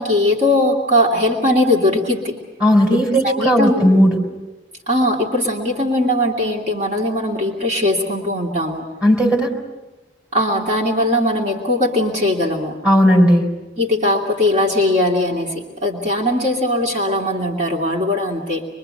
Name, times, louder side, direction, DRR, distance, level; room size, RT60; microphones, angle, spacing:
voice 1, 0.0-2.4 3.2-3.8 4.9-8.8 10.3-12.7 13.8-18.7, left 1 dB, 40° right, -1 dB, 2.7 m, -19 dB
voice 2, 2.6-4.2 9.0-9.5 12.8-13.5, equal, 10° right, 1 dB, 3.9 m, -14 dB
24.5 x 24.0 x 7.8 m, 1.1 s
head